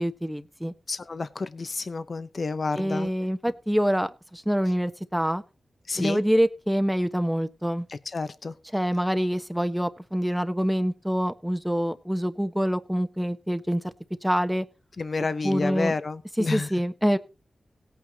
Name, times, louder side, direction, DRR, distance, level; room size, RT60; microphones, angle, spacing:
voice 1, 0.0-0.7 2.7-5.4 6.0-7.8 8.7-13.8 14.2-14.6 15.4-15.9 16.4-17.2, equal, 5° right, 9 dB, 1.2 m, -26 dB
voice 2, 0.9-3.1 5.9-6.2 7.9-8.5 15.0-16.7, left 3 dB, 60° left, 11 dB, 0.8 m, -30 dB
17.5 x 9.2 x 2.9 m, 0.30 s
cardioid pair, 45°, 0 cm